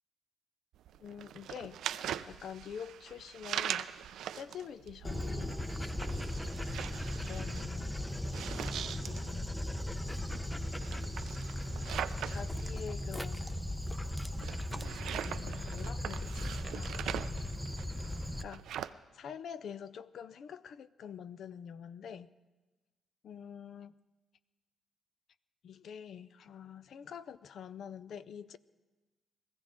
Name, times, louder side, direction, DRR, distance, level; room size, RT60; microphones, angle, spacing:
sound 1, 0.7-18.9, right 10 dB, 85° right, 0.4 m, -42 dB
voice 1, 1.0-1.8 2.3-3.9 4.3-5.6 7.3-8.0 8.9-9.5 12.2-13.6 15.1-17.3 18.4-18.7 19.1-22.3 23.2-23.9 25.6-28.6, left 7 dB, 65° left, 0.5 m, -46 dB
Dog, 5.0-18.4, left 1 dB, 5° left, 0.6 m, -37 dB
21.5 x 15.5 x 3.7 m
cardioid pair, 135°, 0 cm